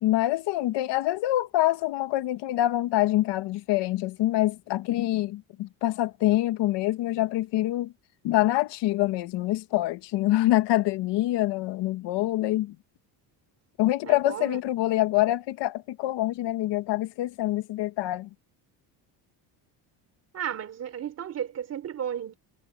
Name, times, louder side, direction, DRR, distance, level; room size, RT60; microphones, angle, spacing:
voice 1, 0.0-7.9 8.2-12.7 13.8-18.3, left 16 dB, 70° left, 1.4 m, -25 dB
voice 2, 14.0-14.6 20.3-22.4, right 9 dB, 35° right, 3.4 m, -33 dB
cardioid pair, 175°, 43 cm